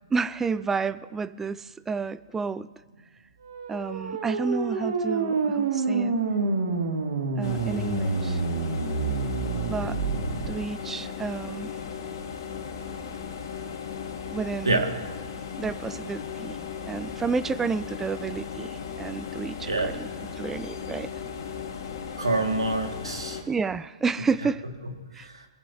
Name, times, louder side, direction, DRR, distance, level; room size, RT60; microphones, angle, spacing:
voice 1, 0.1-2.7 3.7-6.2 7.4-8.4 9.7-10.0 10.5-11.7 14.3-14.8 15.6-20.1 20.4-21.1 23.5-24.6 25.1-25.3, right 4 dB, 10° right, 17 dB, 0.4 m, -30 dB
sound 1, 3.4-10.5, right 4 dB, 65° right, 2.3 m, -28 dB
sound 2, 7.4-23.4, left 6 dB, 60° left, 2.4 m, -37 dB
voice 2, 22.2-23.4 24.8-25.5, right 2 dB, 90° right, 3 dB, 2.0 m, -27 dB
23.0 x 14.5 x 2.8 m, 1.4 s
figure-of-eight pair, 125°, 3 cm